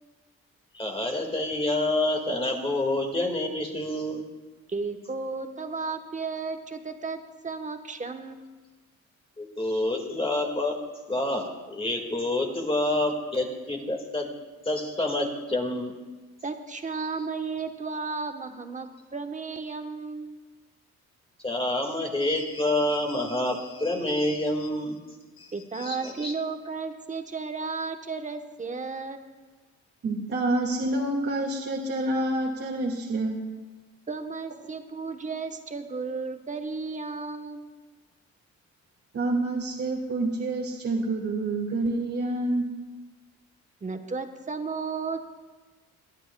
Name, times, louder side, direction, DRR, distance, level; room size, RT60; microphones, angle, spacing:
voice 1, 0.7-4.2 9.4-10.8 11.1-14.3 14.7-15.9 21.4-25.0 25.4-25.5 25.8-26.3, left 1 dB, 20° left, 2 dB, 1.8 m, -28 dB
voice 2, 4.7-7.2 7.4-8.4 16.4-20.4 25.5-29.2 34.1-37.7 43.8-45.2, right 4 dB, 25° right, 6 dB, 1.0 m, -34 dB
voice 3, 30.0-33.4 39.1-42.7, right 2 dB, 50° right, -2 dB, 1.9 m, -27 dB
23.0 x 9.9 x 2.2 m, 1.3 s
cardioid pair, 90°, 30 cm